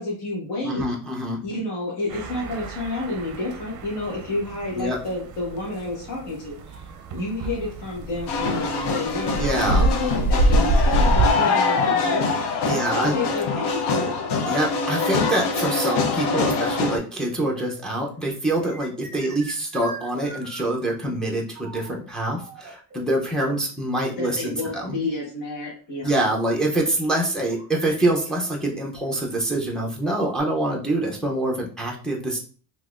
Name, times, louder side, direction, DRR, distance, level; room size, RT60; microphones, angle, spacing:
voice 1, 0.0-0.8 1.4-6.8 7.1-12.3 12.7-14.2 24.1-26.1, left 2 dB, 60° left, -6 dB, 1.3 m, -30 dB
voice 2, 0.6-1.4 4.8-5.0 9.4-9.9 12.7-13.1 14.5-25.0 26.0-32.4, right 1 dB, ahead, 0 dB, 0.4 m, -25 dB
sound 1, 2.1-11.3, right 1 dB, 55° right, 0.5 m, -26 dB
sound 2, 8.3-17.0, left 4 dB, 85° left, 0.7 m, -24 dB
sound 3, 17.1-17.7 18.0-21.0 21.5-21.9 22.2-23.4 24.3-24.4 24.7-24.8 25.4-25.5 27.1-30.4, right 3 dB, 25° right, 0.8 m, -42 dB
3.8 x 2.9 x 2.3 m, 0.40 s
cardioid pair, 180°, 39 cm